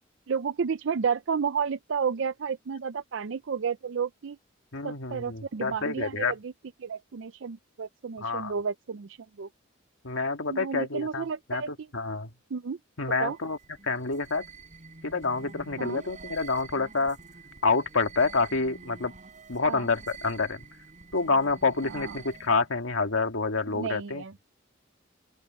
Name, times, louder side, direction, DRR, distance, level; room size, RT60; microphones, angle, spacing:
voice 1, 0.3-4.4 4.8-6.5 6.8-9.5 10.5-11.9 12.5-12.8 13.2-13.4 15.8-16.0 19.6-19.9 21.9-22.2 23.7-24.3, right 6 dB, 65° right, 0.5 m, -31 dB
voice 2, 4.7-6.3 8.2-8.5 10.0-12.3 13.0-13.6 13.8-14.5 15.0-17.2 17.6-19.1 19.5-20.6 21.1-24.2, left 4 dB, 85° left, 2.1 m, -28 dB
sound 1, 13.0-22.8, right 4 dB, 40° right, 5.7 m, -47 dB
open air
head